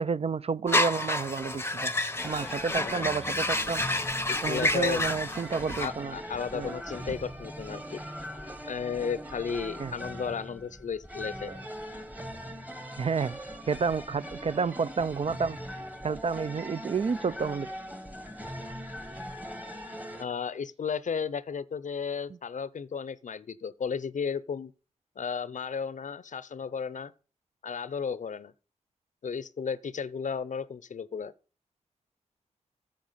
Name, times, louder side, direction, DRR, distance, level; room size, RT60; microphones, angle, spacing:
voice 1, 0.0-1.9 2.2-3.8 4.4-6.2 6.5-6.7 9.8-9.9 11.5-11.6 13.0-13.4 13.7-15.6 16.0-17.7, right 5 dB, 50° right, 0.4 m, -30 dB
sound 1, 0.7-5.9, left 2 dB, 20° left, 0.7 m, -29 dB
sound 2, 2.2-20.2, equal, 10° right, 1.2 m, -41 dB
Motor vehicle (road), 2.9-6.1 6.6-6.7 7.0-8.4 9.3-9.4, right 3 dB, 70° right, 1.4 m, -49 dB
voice 2, 4.3-5.0 5.8-8.0 8.6-11.5 20.2-24.7 25.2-27.1 27.6-28.5 29.2-31.3, left 6 dB, 75° left, 0.6 m, -34 dB
9.1 x 7.2 x 5.6 m
cardioid pair, 60°, 13 cm